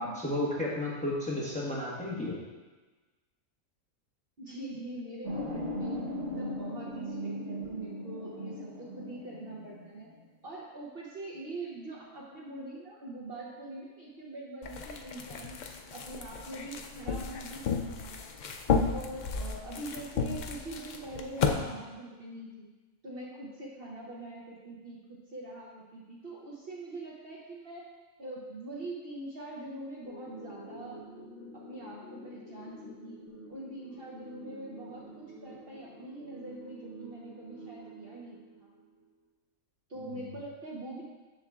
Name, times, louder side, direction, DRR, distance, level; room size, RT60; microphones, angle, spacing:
voice 1, 0.0-2.4 40.1-40.3, left 1 dB, 5° left, -6 dB, 1.1 m, -33 dB
voice 2, 4.4-6.0 6.4-10.1 10.4-18.3 18.9-22.7 23.0-27.9 28.2-31.0 31.5-38.7 39.9-41.0, right 2 dB, 50° right, -4 dB, 1.0 m, -43 dB
sound 1, 5.2-10.2, equal, 70° right, 1.4 m, -38 dB
sound 2, 14.6-21.5, left 5 dB, 85° left, 0.4 m, -33 dB
sound 3, 30.1-39.1, right 1 dB, 65° left, 1.0 m, -49 dB
7.0 x 6.8 x 2.4 m, 1.2 s
omnidirectional pair, 1.4 m